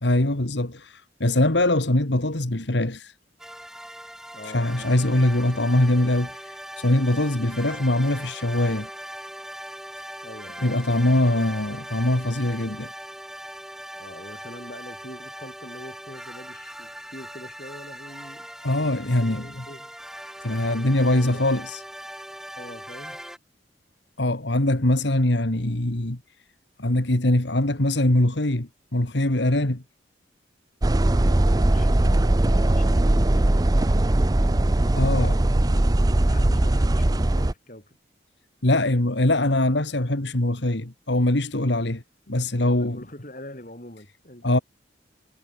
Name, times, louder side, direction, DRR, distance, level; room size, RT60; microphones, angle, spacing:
voice 1, 0.0-3.1 4.4-8.9 10.6-12.9 18.6-19.6 20.4-21.8 24.2-26.2 26.8-29.8 35.0-35.4 38.6-43.0 44.4-44.6, left 1 dB, 70° left, 2.1 m, -22 dB
sound 1, 3.4-23.4, equal, ahead, 4.0 m, -40 dB
voice 2, 4.3-4.9 10.2-10.7 13.9-19.9 21.1-21.4 22.6-23.2 30.9-34.7 35.9-38.0 42.3-42.4 42.8-44.6, left 1 dB, 45° left, 4.9 m, -43 dB
sound 2, 30.8-37.5, right 1 dB, 20° right, 0.5 m, -20 dB
head